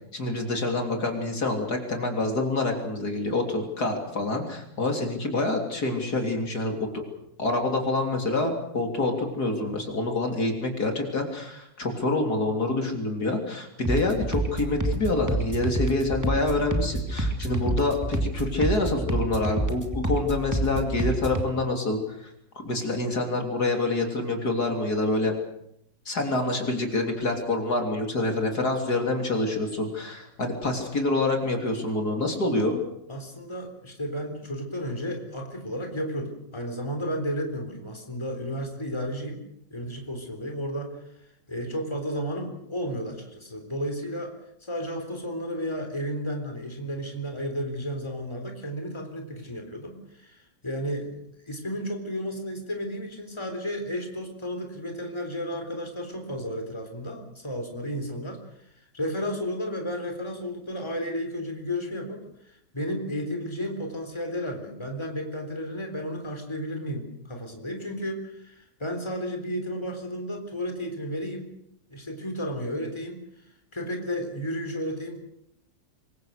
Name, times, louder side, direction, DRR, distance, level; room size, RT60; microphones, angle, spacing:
voice 1, 0.1-7.0 7.4-25.3 26.1-32.8, left 2 dB, 60° left, 3 dB, 3.9 m, -27 dB
sound 1, 13.8-21.5, right 1 dB, 10° right, 2.8 m, -28 dB
voice 2, 33.1-39.4 39.7-41.0 41.5-44.3 44.6-51.1 51.5-58.4 58.9-71.5 71.9-73.2 73.7-75.2, equal, 15° left, 4 dB, 3.8 m, -33 dB
26.0 x 23.0 x 6.6 m, 0.77 s
omnidirectional pair, 1.9 m